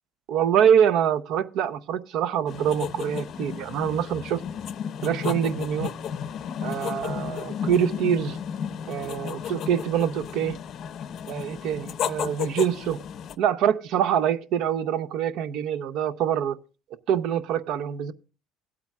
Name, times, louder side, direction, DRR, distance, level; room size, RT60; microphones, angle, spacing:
voice 1, 0.3-4.4 5.0-5.9 6.6-8.4 8.9-10.6 11.3-13.0 13.4-16.6 17.1-18.1, right 9 dB, 65° right, 0.7 m, -25 dB
sound 1, 2.5-13.3, left 8 dB, 50° left, 0.6 m, -33 dB
17.0 x 8.6 x 2.4 m
cardioid pair, 125°, 0 cm